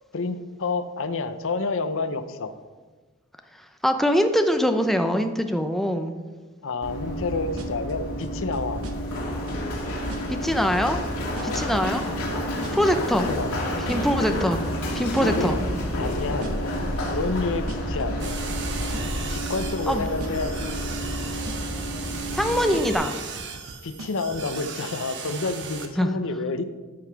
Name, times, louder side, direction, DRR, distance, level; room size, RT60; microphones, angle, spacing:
voice 1, 0.1-2.5 6.6-8.8 11.4-11.7 12.6-12.8 13.3-13.7 15.2-15.6 16.0-16.7 17.1-18.4 19.3-20.9 23.8-26.6, left 3 dB, 65° left, 11 dB, 0.7 m, -29 dB
voice 2, 3.8-6.1 10.3-11.0 11.4-12.0 12.7-13.3 13.9-14.6 14.9-15.6 19.9-20.1 22.3-23.1 26.0-26.1, equal, ahead, 6 dB, 0.6 m, -23 dB
Run, 6.8-22.9, equal, 85° left, 2.4 m, -29 dB
sound 1, 7.6-7.9 8.2-9.2 9.5-9.8 10.1-10.5 10.7-11.1 11.4-11.7 12.0-13.0 13.3-14.9 15.1-15.5 15.8-16.1 16.4-16.8 17.0-17.4 17.7-18.0 18.3-19.3 19.6-19.9 20.2-20.6 20.8-21.2 21.5-21.8 22.1-23.1 23.4-24.5, right 2 dB, 80° right, 1.0 m, -42 dB
sound 2, 18.2-25.9, right 6 dB, 55° right, 1.1 m, -37 dB
13.0 x 5.7 x 4.6 m, 1.3 s
head